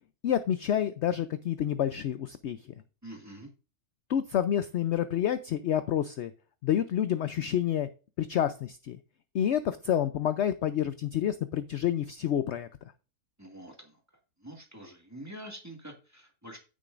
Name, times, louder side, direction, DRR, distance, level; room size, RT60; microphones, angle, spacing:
voice 1, 0.2-2.6 4.1-6.3 6.6-7.9 8.2-9.0 9.3-12.7, left 10 dB, 65° left, 12 dB, 0.7 m, -28 dB
voice 2, 3.0-3.5 13.4-14.0 14.4-16.6, right 1 dB, 10° right, 1 dB, 1.7 m, -46 dB
9.9 x 9.1 x 2.5 m, 0.33 s
omnidirectional pair, 1.6 m